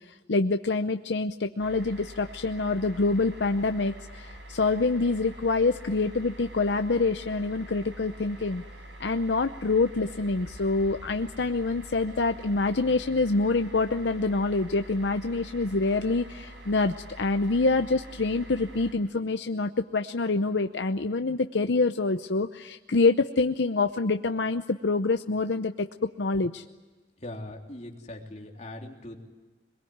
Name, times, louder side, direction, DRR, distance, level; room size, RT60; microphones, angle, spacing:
voice 1, 0.3-8.6 9.0-25.9 26.2-26.6, left 3 dB, 75° left, 7 dB, 0.8 m, -26 dB
sound 1, 1.6-18.9, right 1 dB, 75° right, 7.9 m, -45 dB
voice 2, 27.2-29.2, left 1 dB, 40° left, 0 dB, 3.5 m, -40 dB
23.0 x 22.0 x 9.5 m, 1.2 s
head